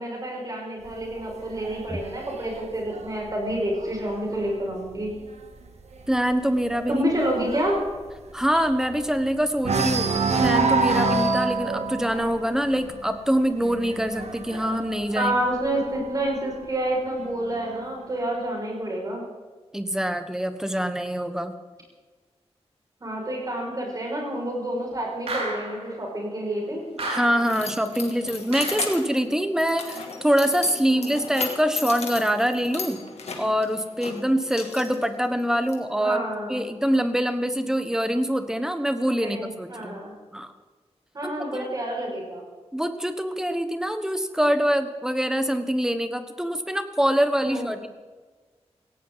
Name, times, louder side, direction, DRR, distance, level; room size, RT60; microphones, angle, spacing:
voice 1, 0.0-5.1 6.9-7.8 15.1-19.2 23.0-26.8 28.7-29.0 30.8-31.2 36.0-36.6 39.2-40.1 41.1-42.4 47.4-47.7, right 1 dB, 35° right, -2 dB, 6.2 m, -28 dB
sound 1, 0.8-4.5 4.9-5.2 5.5-5.6 6.0-9.2 9.6-16.1 17.0-18.0, right 3 dB, 90° right, 1.6 m, -28 dB
voice 2, 6.1-7.0 8.3-10.1 10.4-15.3 19.7-21.5 27.1-33.0 33.4-36.2 36.5-40.0 40.3-40.5 41.2-41.7 42.7-47.9, equal, 5° right, 8 dB, 1.2 m, -24 dB
sound 2, 25.3-25.9 27.0-27.6 28.5-29.0, right 2 dB, 70° right, 5.6 m, -32 dB
Keys jangling, 26.7-35.7, left 4 dB, 75° left, 2.6 m, -36 dB
18.0 x 16.5 x 4.1 m, 1.4 s
wide cardioid pair, 160°, 11 cm